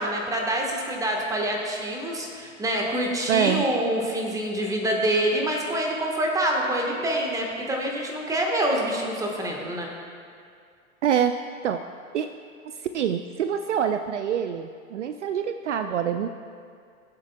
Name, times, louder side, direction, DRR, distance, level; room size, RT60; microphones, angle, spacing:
voice 1, 0.0-9.9, right 1 dB, 10° right, 0 dB, 1.3 m, -26 dB
voice 2, 3.3-3.6 11.0-11.4 11.6-11.8 12.1-12.3 12.6-16.3, right 8 dB, 60° right, 8 dB, 0.5 m, -25 dB
20.0 x 7.5 x 2.2 m, 2.2 s
figure-of-eight pair, 100°, 41 cm